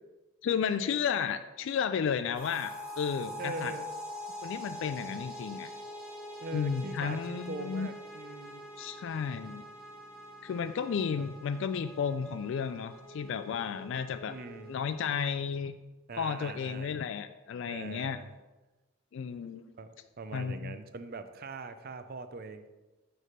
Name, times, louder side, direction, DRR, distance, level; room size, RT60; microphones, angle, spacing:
voice 1, 0.4-3.7 4.4-5.7 6.5-7.9 8.8-9.6 10.4-14.4 14.7-15.7 16.2-18.2 19.1-19.6 20.3-20.8, left 6 dB, 65° left, 10 dB, 0.3 m, -33 dB
sound 1, 2.3-15.4, equal, 5° right, 2.5 m, -45 dB
voice 2, 3.4-3.9 6.4-8.7 11.2-11.3 14.3-14.8 16.1-17.1 17.6-18.3 19.8-22.7, right 3 dB, 50° right, 10 dB, 0.5 m, -42 dB
8.5 x 3.3 x 5.0 m, 1.1 s
head